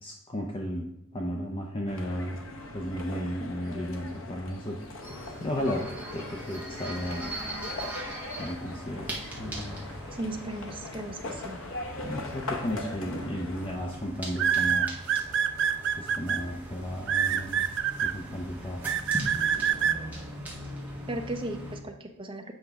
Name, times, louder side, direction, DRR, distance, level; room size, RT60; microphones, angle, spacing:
voice 1, 0.0-2.4 2.7-4.8 5.4-7.3 8.4-9.9 12.0-14.9 16.0-17.7 18.0-18.9, equal, 25° left, 1 dB, 0.6 m, -34 dB
sound 1, 1.9-13.8, left 2 dB, 65° left, 0.9 m, -41 dB
sound 2, 5.0-21.8, right 1 dB, 5° right, 1.3 m, -41 dB
voice 2, 10.1-11.6 21.1-22.5, right 1 dB, 25° right, 4 dB, 0.7 m, -36 dB
sound 3, 12.9-13.2 14.4-16.4 17.1-18.1 18.9-20.0, right 8 dB, 55° right, 0.4 m, -25 dB
8.0 x 5.1 x 3.5 m, 0.84 s
head